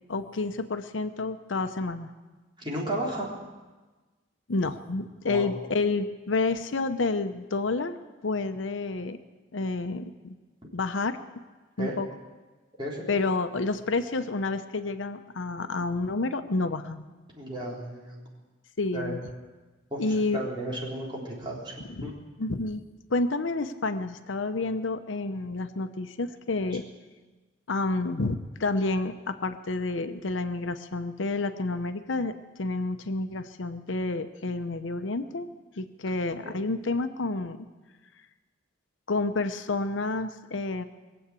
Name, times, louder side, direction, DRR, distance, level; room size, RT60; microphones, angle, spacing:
voice 1, 0.1-2.1 4.5-7.9 8.2-9.2 9.5-10.4 10.7-11.2 11.8-12.1 13.1-17.1 18.8-19.2 20.0-20.4 21.9-22.1 22.4-22.8 23.1-26.9 27.7-35.5 35.8-37.6 39.1-40.8, left 3 dB, 80° left, 9 dB, 0.8 m, -29 dB
voice 2, 2.6-3.3 5.3-5.5 11.8-12.0 12.8-13.2 17.4-18.2 18.9-19.2 19.9-20.0 20.3-21.7 22.0-22.1 26.7-26.8 36.4-36.5, right 1 dB, 25° right, -4 dB, 3.7 m, -33 dB
21.5 x 8.1 x 8.3 m, 1.3 s
head